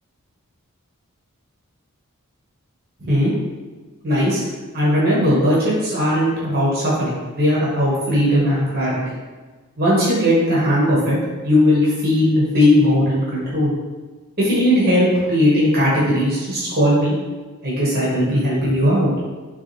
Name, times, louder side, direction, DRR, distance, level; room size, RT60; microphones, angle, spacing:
voice 1, 4.0-4.4 4.7-9.1 9.8-11.2 11.4-13.7 14.4-17.1 17.6-19.1, equal, 45° right, -8 dB, 1.3 m, -18 dB
4.0 x 3.5 x 3.3 m, 1.3 s
head